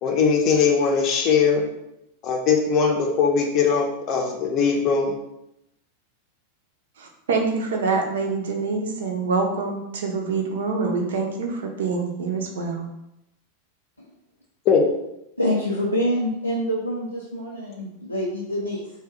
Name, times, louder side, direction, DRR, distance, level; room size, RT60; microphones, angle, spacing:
voice 1, 0.0-1.7 2.2-5.1 14.7-14.9, left 5 dB, 35° left, 2 dB, 0.6 m, -20 dB
voice 2, 7.0-12.9, right 4 dB, 60° right, 2 dB, 0.5 m, -25 dB
voice 3, 15.4-18.9, equal, 85° left, -4 dB, 0.4 m, -26 dB
2.7 x 2.3 x 3.7 m, 0.86 s
figure-of-eight pair, 90°, 0 cm